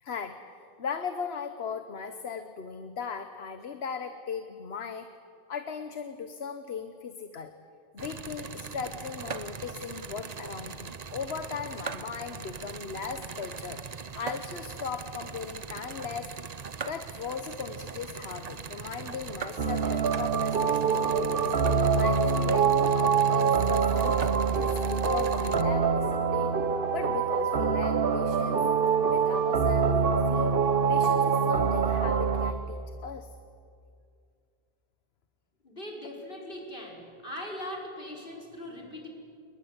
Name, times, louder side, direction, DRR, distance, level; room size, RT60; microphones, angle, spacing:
voice 1, 0.0-5.1 5.5-7.5 7.9-13.9 14.2-16.3 16.9-21.5 21.9-26.5 26.9-28.6 29.0-33.3, left 6 dB, 80° left, 8 dB, 1.3 m, -38 dB
sound 1, 8.0-25.6, right 5 dB, 45° right, 0.9 m, -40 dB
sound 2, 19.6-32.5, right 6 dB, 60° right, 1.2 m, -25 dB
voice 2, 35.6-39.1, left 1 dB, 60° left, -1 dB, 5.2 m, -40 dB
29.0 x 21.0 x 8.1 m, 2.4 s
omnidirectional pair, 1.0 m